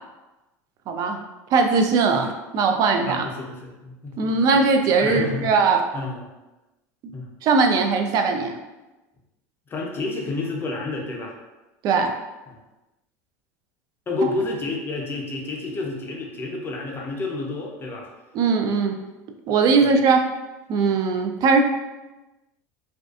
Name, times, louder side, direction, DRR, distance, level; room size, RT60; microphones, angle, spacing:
voice 1, 0.9-1.2 1.5-3.2 4.2-5.8 7.4-8.6 11.8-12.1 18.3-19.0 19.5-20.2 20.7-21.6, right 4 dB, 50° right, 5 dB, 0.3 m, -20 dB
voice 2, 3.1-4.2 5.0-5.5 5.9-6.3 7.1-7.3 9.7-11.3 12.5-12.6 14.1-18.1 19.8-19.9, left 3 dB, 25° left, -1 dB, 0.6 m, -30 dB
2.4 x 2.4 x 2.3 m, 1.1 s
supercardioid pair, 100°, 8 cm